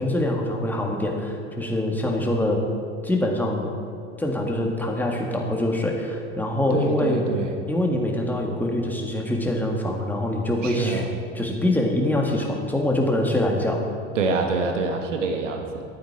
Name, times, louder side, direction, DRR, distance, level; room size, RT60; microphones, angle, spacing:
voice 1, 0.0-2.6 3.0-3.7 4.2-7.2 7.7-11.0 11.4-13.8, left 1 dB, 5° left, 0 dB, 1.9 m, -24 dB
voice 2, 6.7-7.5 10.6-11.1 14.1-15.8, right 4 dB, 85° right, 3 dB, 1.2 m, -26 dB
12.0 x 8.8 x 4.9 m, 2.5 s
hypercardioid pair, 85°, 36 cm